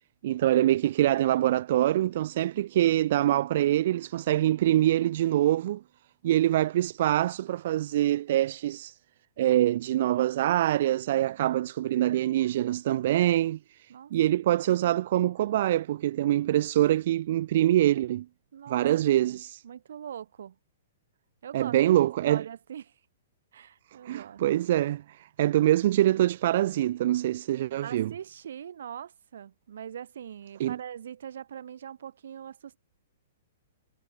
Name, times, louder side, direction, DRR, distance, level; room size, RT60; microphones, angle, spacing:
voice 1, 0.2-5.8 6.2-9.0 9.4-18.3 18.7-19.6 21.5-22.4 24.0-28.1 30.6-30.8, right 13 dB, 40° right, 0.6 m, -24 dB
voice 2, 18.5-18.8 19.2-19.4 19.6-20.6 21.4-21.8 22.3-22.8 23.5-24.4 27.8-32.8, right 9 dB, 60° right, 5.5 m, -42 dB
hypercardioid pair, 180°, 0 cm